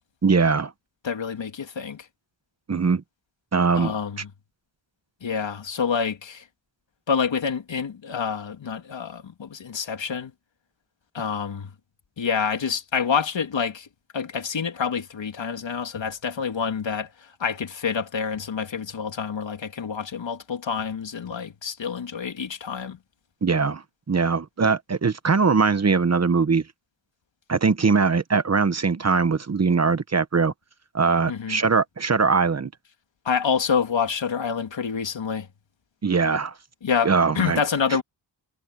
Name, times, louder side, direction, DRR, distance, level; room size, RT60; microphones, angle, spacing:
voice 1, 0.2-0.7 2.7-3.0 3.5-3.9 23.4-26.6 27.5-30.5 30.9-32.7 36.0-36.6 37.0-37.6, right 5 dB, 35° right, 1.0 m, -21 dB
voice 2, 1.0-2.1 3.7-4.3 5.2-6.5 7.1-10.3 11.1-11.7 12.2-13.9 14.1-23.0 31.3-31.6 33.2-35.5 36.8-38.0, left 6 dB, 75° left, 3.0 m, -27 dB
wide cardioid pair, 145°, 45 cm